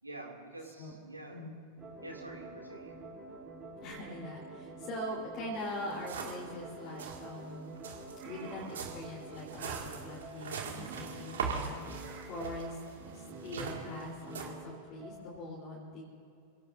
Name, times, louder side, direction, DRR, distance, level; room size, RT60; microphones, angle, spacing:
voice 1, 0.0-1.5 2.0-3.1 8.5-8.9 13.6-14.0, right 2 dB, 85° right, 0 dB, 2.4 m, -48 dB
sound 1, 1.8-15.3, right 2 dB, 20° right, 3.2 m, -48 dB
voice 2, 3.8-7.8 8.2-11.8 12.2-16.0, left 1 dB, 40° left, -4 dB, 3.6 m, -42 dB
sound 2, 5.6-5.7 5.9-6.5 6.8-7.2 7.8-14.5, right 6 dB, 65° right, 2.1 m, -41 dB
sound 3, 8.2-8.8 9.6-9.9 10.7-11.1 12.0-12.4, right 5 dB, 45° right, 3.5 m, -48 dB
28.5 x 17.0 x 2.6 m, 2.6 s
figure-of-eight pair, 90°, 0 cm